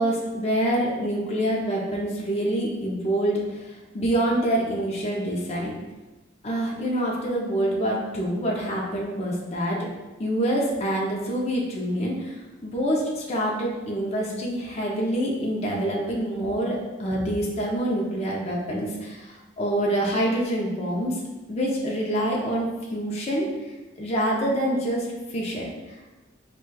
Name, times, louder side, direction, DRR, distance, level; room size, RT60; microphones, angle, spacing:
voice 1, 0.0-3.4 3.9-5.7 6.4-9.8 10.2-12.4 12.6-19.3 19.6-21.2 21.5-23.5 24.0-25.7, right 1 dB, 35° left, -3 dB, 0.5 m, -26 dB
4.6 x 2.2 x 2.2 m, 1.1 s
head